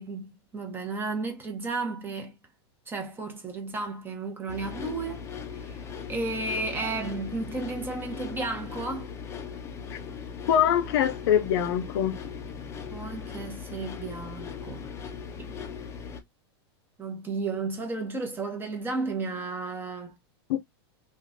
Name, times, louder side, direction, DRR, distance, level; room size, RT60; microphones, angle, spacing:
voice 1, 0.0-2.4 2.9-5.3 5.5-5.8 6.1-9.1 12.9-14.9 15.4-15.8 17.0-20.2, right 3 dB, 15° right, 0.9 m, -33 dB
sound 1, 4.5-16.2, left 6 dB, 20° left, 0.6 m, -39 dB
voice 2, 10.5-12.2 20.5-20.6, left 9 dB, 65° left, 0.6 m, -24 dB
3.0 x 2.4 x 2.6 m
hypercardioid pair, 130°, 14 cm